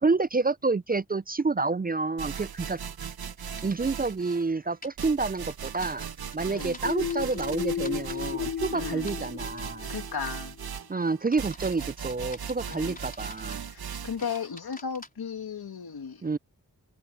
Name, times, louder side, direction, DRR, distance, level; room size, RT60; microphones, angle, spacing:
voice 1, 0.0-2.8 3.6-6.1 6.3-9.9 10.9-13.6 16.2-16.4, right 3 dB, 25° right, 0.4 m, -28 dB
sound 1, 2.2-4.5 5.0-14.5, right 7 dB, 80° right, 1.1 m, -38 dB
sound 2, 4.8-5.1 5.5-8.0 9.0-9.8 10.4-10.7 11.2-13.6 13.9-15.1, left 2 dB, 25° left, 4.5 m, -48 dB
voice 2, 6.5-6.8 8.7-9.1 9.9-10.6 12.7-13.0 13.7-16.2, left 6 dB, 80° left, 2.3 m, -35 dB
sound 3, 6.8-10.5, left 8 dB, 50° left, 1.3 m, -34 dB
cardioid pair, 55°, 37 cm